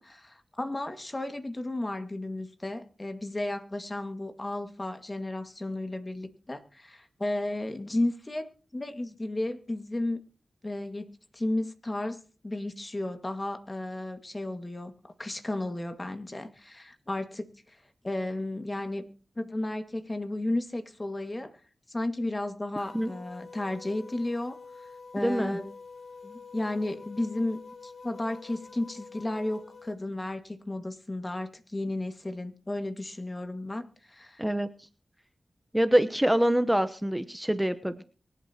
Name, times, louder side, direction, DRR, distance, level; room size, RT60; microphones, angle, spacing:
voice 1, 0.0-10.2 10.6-14.9 15.2-17.8 18.0-19.0 19.4-21.5 21.9-24.6 25.1-25.7 26.2-34.4, left 1 dB, 35° left, 7 dB, 2.0 m, -33 dB
sound 1, 22.8-30.0, left 4 dB, 80° left, 3.4 m, -47 dB
voice 2, 25.2-25.6 34.4-34.7 35.7-38.0, right 1 dB, 10° right, 10 dB, 1.0 m, -25 dB
24.0 x 8.1 x 3.0 m, 0.39 s
cardioid pair, 40°, 0 cm